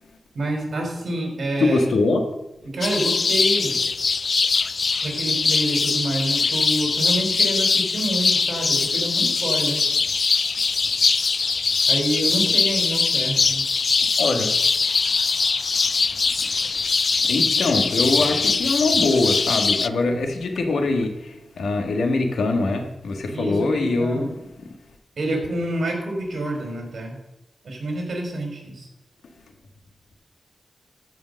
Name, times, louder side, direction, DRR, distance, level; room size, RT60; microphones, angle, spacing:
voice 1, 0.3-1.8 2.7-3.8 5.0-9.8 11.9-13.6 23.3-24.3 25.2-27.2 27.6-28.9, right 1 dB, 60° right, 2 dB, 3.7 m, -27 dB
voice 2, 1.6-2.2 14.0-14.5 16.4-16.5 17.2-24.3, left 3 dB, 85° left, 4 dB, 1.8 m, -23 dB
sound 1, 2.8-19.9, left 4 dB, 50° left, 0.3 m, -22 dB
14.0 x 5.2 x 6.6 m, 0.93 s
wide cardioid pair, 120°, 0 cm